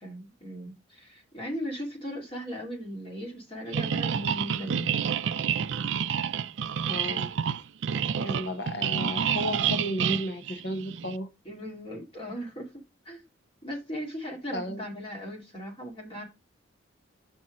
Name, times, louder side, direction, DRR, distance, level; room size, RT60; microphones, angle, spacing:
voice 1, 0.0-4.9 11.5-12.7 13.0-13.2 13.6-16.2, equal, 30° left, 2.1 m, -37 dB
sound 1, 3.7-11.2, right 8 dB, 70° right, 0.4 m, -29 dB
voice 2, 6.9-7.3 8.2-11.3 14.5-14.8, left 1 dB, 55° left, 0.9 m, -33 dB
6.3 x 4.2 x 5.0 m
head